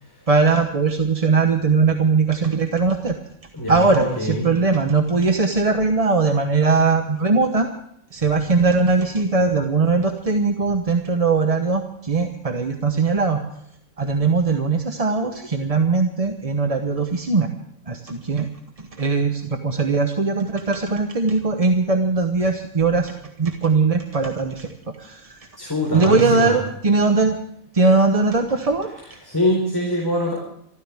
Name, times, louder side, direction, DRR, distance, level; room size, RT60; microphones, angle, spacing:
voice 1, 0.3-3.2 3.7-7.7 8.1-13.4 14.0-17.5 17.9-18.5 18.8-25.5 25.9-27.4 27.7-29.2, right 4 dB, 30° right, 5 dB, 0.9 m, -20 dB
voice 2, 3.5-4.5 25.6-26.5 29.2-30.3, left 1 dB, 15° left, -2 dB, 4.2 m, -23 dB
26.5 x 14.5 x 3.5 m, 0.72 s
omnidirectional pair, 1.5 m